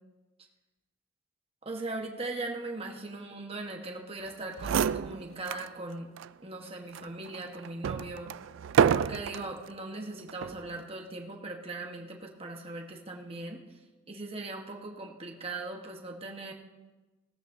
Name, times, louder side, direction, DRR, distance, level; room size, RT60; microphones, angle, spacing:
voice 1, 1.6-6.1 6.4-8.3 8.9-13.6 14.1-16.5, right 2 dB, 30° right, 1 dB, 1.2 m, -39 dB
sound 1, 4.3-4.4 4.6-5.7 6.2-6.3 6.9-9.5 10.3-10.6, right 7 dB, 70° right, 0.3 m, -28 dB
18.5 x 13.5 x 2.7 m, 1.2 s
head